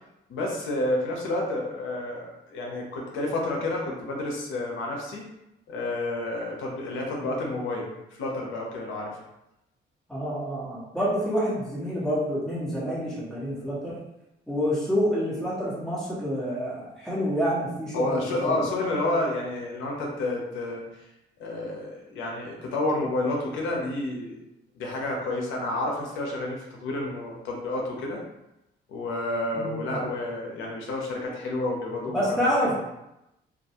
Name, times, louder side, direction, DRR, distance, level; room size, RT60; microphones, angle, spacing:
voice 1, 0.3-5.3 5.7-7.9 8.2-9.2 17.9-21.0 21.4-24.4 24.8-28.2 28.9-32.3 32.6-32.7, left 2 dB, 85° left, -1 dB, 0.6 m, -30 dB
voice 2, 10.1-14.0 14.5-18.2 18.5-18.6 29.5-30.0 32.1-32.7, equal, ahead, -8 dB, 1.2 m, -27 dB
2.3 x 2.2 x 2.8 m, 0.89 s
cardioid pair, 90°, 20 cm